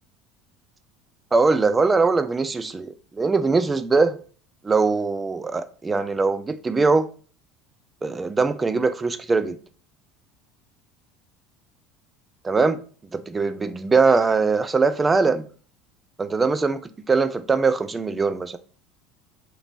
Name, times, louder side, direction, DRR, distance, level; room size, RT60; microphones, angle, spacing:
voice 1, 1.3-4.2 4.6-7.1 8.0-9.6 12.4-12.8 13.1-15.5 16.2-16.8 17.1-18.6, right 4 dB, 20° right, 0.3 m, -21 dB
3.0 x 2.5 x 4.3 m
figure-of-eight pair, 70°, 0 cm